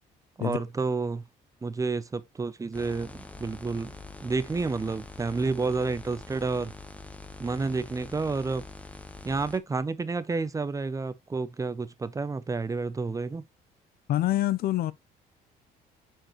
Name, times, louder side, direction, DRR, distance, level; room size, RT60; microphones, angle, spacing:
voice 1, 0.4-1.2 1.6-3.9 4.2-6.7 7.4-8.6 9.2-13.4, right 4 dB, 20° right, 0.6 m, -30 dB
sound 1, 2.7-9.6, left 2 dB, 10° left, 1.0 m, -44 dB
voice 2, 14.1-14.9, left 14 dB, 65° left, 0.6 m, -26 dB
8.8 x 4.6 x 3.1 m
cardioid pair, 110°, 17 cm